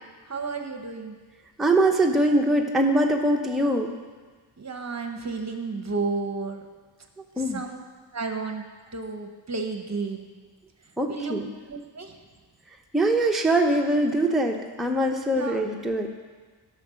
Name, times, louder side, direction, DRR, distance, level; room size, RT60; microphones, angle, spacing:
voice 1, 0.3-1.1 4.6-6.6 7.3-7.8 8.1-8.6 8.9-10.3 11.1-11.4 11.7-12.2 15.3-15.6, right 4 dB, 35° right, 5 dB, 1.0 m, -32 dB
voice 2, 1.6-3.9 7.4-7.6 11.0-11.5 12.9-16.1, right 1 dB, ahead, 1 dB, 0.8 m, -22 dB
13.0 x 5.5 x 6.3 m, 1.4 s
wide cardioid pair, 90°, 45 cm